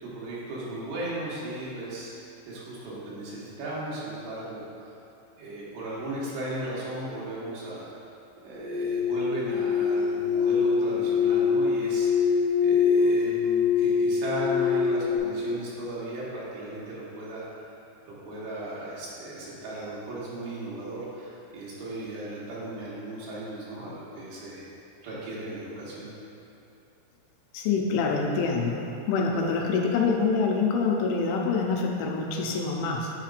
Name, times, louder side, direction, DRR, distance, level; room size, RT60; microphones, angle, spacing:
voice 1, 0.0-4.9 5.4-7.9 8.4-17.4 18.1-24.6 25.0-26.1, right 1 dB, 75° right, -7 dB, 3.2 m, -36 dB
sound 1, 8.6-15.2, left 6 dB, 60° left, 1.6 m, -24 dB
voice 2, 27.5-33.1, left 4 dB, 85° left, 0 dB, 2.9 m, -26 dB
10.0 x 4.3 x 2.5 m, 2.8 s
omnidirectional pair, 5.2 m